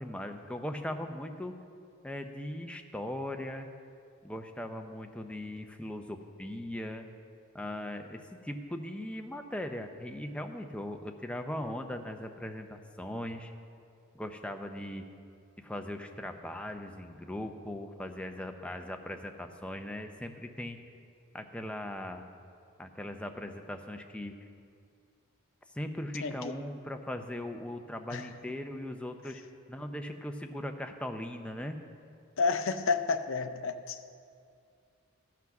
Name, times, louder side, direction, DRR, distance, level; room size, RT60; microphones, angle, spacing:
voice 1, 0.0-1.5 2.0-3.7 4.2-7.1 7.5-13.5 14.1-15.1 15.6-20.8 21.3-22.3 22.8-24.5 25.7-29.4 29.7-31.8, left 1 dB, 5° left, 5 dB, 0.6 m, -39 dB
voice 2, 26.2-26.5 28.1-28.3 32.4-34.2, left 4 dB, 60° left, 9 dB, 0.6 m, -31 dB
14.5 x 5.9 x 5.9 m, 2.3 s
head